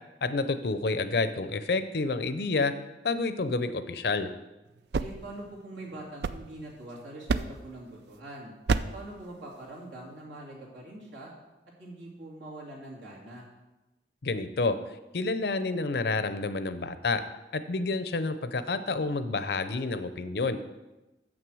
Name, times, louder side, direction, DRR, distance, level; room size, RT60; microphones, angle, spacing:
voice 1, 0.2-2.7 3.0-4.3 14.2-14.8 15.1-17.2 17.5-20.6, left 3 dB, 60° left, 11 dB, 0.5 m, -29 dB
sound 1, 4.7-6.9 7.3-7.8 8.7-9.1, right 4 dB, 65° right, 0.4 m, -31 dB
voice 2, 5.0-8.5 8.9-11.3 11.8-13.5, right 1 dB, 85° right, -4 dB, 2.7 m, -43 dB
7.4 x 6.1 x 6.2 m, 1.0 s
head